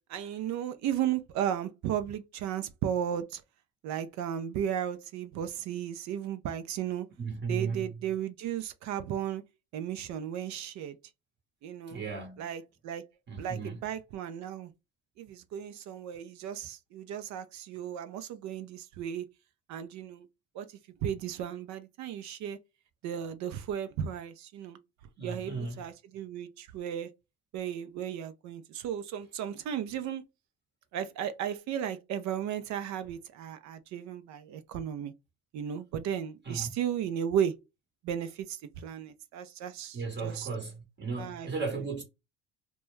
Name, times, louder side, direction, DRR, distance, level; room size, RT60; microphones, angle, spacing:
voice 1, 0.1-3.4 3.8-7.1 7.5-9.4 9.7-11.0 11.6-12.0 12.4-13.0 13.4-14.7 15.2-19.2 19.7-20.2 20.5-20.7 21.0-22.6 23.0-24.8 25.2-27.1 27.5-30.2 30.9-35.1 35.5-37.5 38.0-40.5 41.2-41.5, right 9 dB, 55° right, 0.5 m, -35 dB
voice 2, 7.2-8.0 11.9-12.5 13.3-13.8 25.2-25.8 36.4-36.7 39.9-42.0, right 4 dB, 30° right, 0.9 m, -35 dB
2.2 x 2.1 x 3.0 m
supercardioid pair, 85°, 35 cm